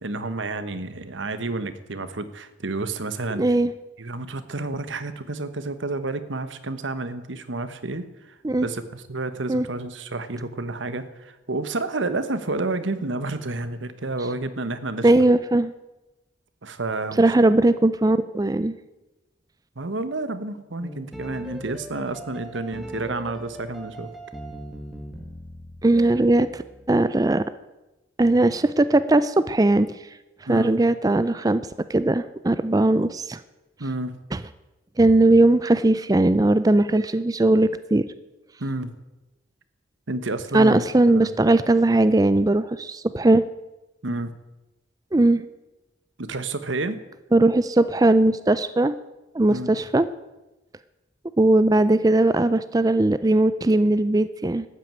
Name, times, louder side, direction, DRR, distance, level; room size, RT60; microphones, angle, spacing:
voice 1, 0.0-3.4 4.0-8.3 8.6-15.1 16.6-17.3 19.8-24.1 30.5-30.8 33.8-34.1 38.6-38.9 40.1-40.8 41.1-41.3 44.0-44.3 46.2-47.0 49.5-49.7, right 2 dB, 80° right, 11 dB, 1.2 m, -30 dB
voice 2, 3.4-3.7 8.4-8.7 9.5-9.7 15.0-15.7 17.2-18.7 25.8-26.6 26.9-27.4 28.2-29.9 30.5-31.6 31.9-33.4 34.3-34.4 35.0-38.1 40.5-43.4 45.1-45.4 47.3-49.0 49.3-50.1 51.4-54.7, right 2 dB, 20° right, 13 dB, 0.4 m, -19 dB
sound 1, 20.8-26.9, right 1 dB, ahead, 1.5 m, -40 dB
13.0 x 9.3 x 8.9 m, 1.0 s
head